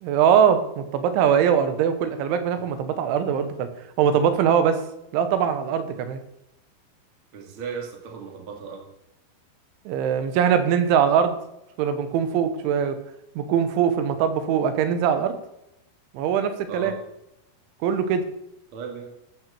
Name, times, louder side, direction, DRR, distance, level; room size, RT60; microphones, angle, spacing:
voice 1, 0.0-3.7 4.0-4.8 5.1-6.2 9.9-11.4 11.8-13.0 13.4-15.4 16.2-17.0 17.8-18.2, right 8 dB, 90° right, 9 dB, 3.6 m, -21 dB
voice 2, 7.3-8.8 16.7-17.0 18.7-19.1, right 6 dB, 40° right, 1 dB, 2.2 m, -36 dB
14.0 x 5.9 x 7.0 m, 0.84 s
omnidirectional pair, 5.3 m